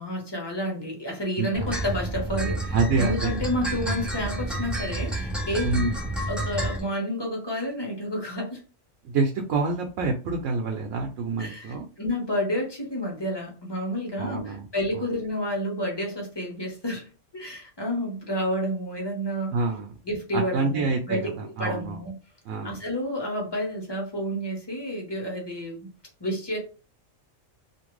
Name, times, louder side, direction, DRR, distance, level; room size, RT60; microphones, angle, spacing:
voice 1, 0.0-5.9 6.3-8.6 11.4-19.6 20.0-22.1 22.6-25.9 26.2-26.6, equal, 20° left, 0 dB, 0.9 m, -30 dB
voice 2, 1.4-1.7 2.7-3.4 5.6-5.9 9.0-11.8 14.2-14.6 14.9-15.0 19.5-19.9 20.3-22.0 22.5-22.8, right 3 dB, 75° right, 2 dB, 0.9 m, -27 dB
sound 1, 1.5-6.8, right 1 dB, ahead, 0.5 m, -29 dB
2.8 x 2.5 x 3.1 m, 0.34 s
omnidirectional pair, 1.3 m